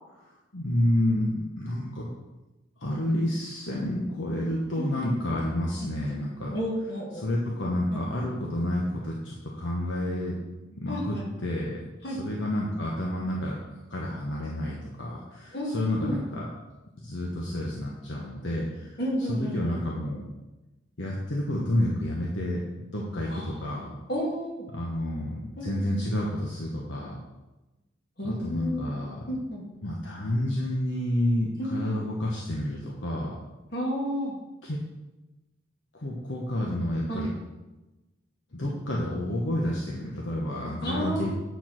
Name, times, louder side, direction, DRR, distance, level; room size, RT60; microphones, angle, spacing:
voice 1, 0.5-2.1 2.8-6.5 7.2-10.3 10.8-11.8 12.2-13.6 13.9-16.4 17.0-19.0 19.3-20.2 21.0-23.9 24.7-27.2 28.2-29.2 29.8-33.3 34.6-34.8 35.9-37.3 38.5-41.3, left 1 dB, 75° left, -3 dB, 1.2 m, -29 dB
voice 2, 4.8-5.1 5.8-6.2 6.5-7.2 7.9-8.3 10.9-11.3 12.0-12.2 15.5-16.2 19.0-19.8 23.3-23.8 24.1-24.7 25.6-25.9 28.2-29.0 29.3-29.7 31.6-32.0 33.7-34.3 37.1-37.4 38.6-38.7 40.8-41.3, equal, 55° left, -3 dB, 2.5 m, -32 dB
8.6 x 4.6 x 6.0 m, 1.1 s
head